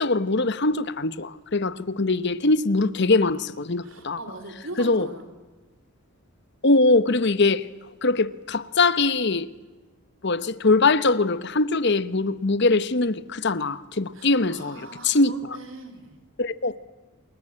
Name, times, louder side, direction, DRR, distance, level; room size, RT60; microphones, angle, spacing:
voice 1, 0.0-4.2 4.8-5.1 6.6-7.6 8.0-9.5 10.2-15.3 16.4-16.7, left 3 dB, 50° left, 1.0 m, -22 dB
voice 2, 3.8-5.3 14.1-16.2, right 2 dB, 60° right, 3.8 m, -40 dB
29.0 x 21.0 x 8.7 m
head